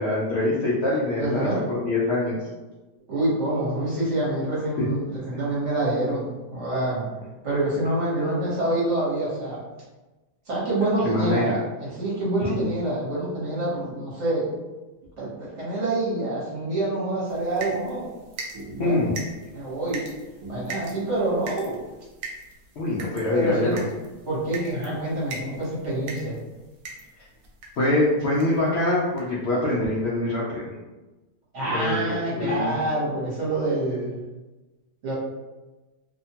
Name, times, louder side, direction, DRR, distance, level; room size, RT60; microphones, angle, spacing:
voice 1, 0.0-2.4 11.0-11.6 12.4-12.7 18.8-19.1 22.8-23.8 27.8-30.7 31.6-32.7, left 2 dB, 90° left, -6 dB, 0.5 m, -24 dB
voice 2, 1.2-1.6 3.1-7.1 7.4-9.6 10.5-14.5 15.2-18.1 18.8-19.1 19.5-20.1 20.5-21.8 23.3-23.9 24.3-26.4 31.5-34.1 35.0-35.1, right 1 dB, 50° right, -7 dB, 1.1 m, -26 dB
sound 1, 17.3-27.9 28.4-28.7 29.2-29.3 29.6-29.7, right 3 dB, 65° right, 0.9 m, -41 dB
2.8 x 2.2 x 2.7 m, 1.1 s
omnidirectional pair, 1.8 m